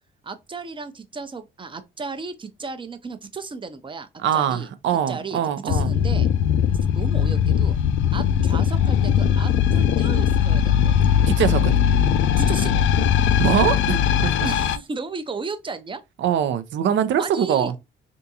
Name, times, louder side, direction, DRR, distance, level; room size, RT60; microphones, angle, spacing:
voice 1, 0.2-4.7 5.1-5.4 5.6-6.3 6.9-7.8 8.1-11.0 12.4-12.8 14.4-16.0 17.2-17.7, right 4 dB, 25° right, 0.6 m, -34 dB
voice 2, 4.2-5.9 11.3-11.8 13.4-14.3 16.2-17.8, right 9 dB, 70° right, 0.5 m, -22 dB
sound 1, 5.7-14.8, left 8 dB, 75° left, 0.4 m, -19 dB
3.5 x 2.6 x 2.8 m
cardioid pair, 90°, 20 cm